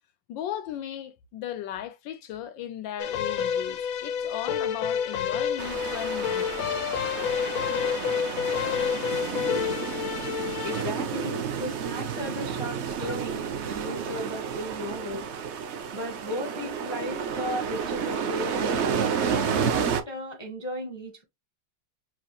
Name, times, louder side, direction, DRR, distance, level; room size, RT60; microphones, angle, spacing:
voice 1, 0.3-6.8, left 11 dB, 85° left, 1.4 m, -36 dB
sound 1, 3.0-10.8, left 8 dB, 70° left, 0.9 m, -29 dB
sound 2, 5.6-20.0, right 7 dB, 65° right, 0.6 m, -31 dB
voice 2, 10.6-15.3 15.9-21.2, left 1 dB, 25° left, 0.6 m, -35 dB
6.0 x 2.4 x 3.0 m
omnidirectional pair, 2.0 m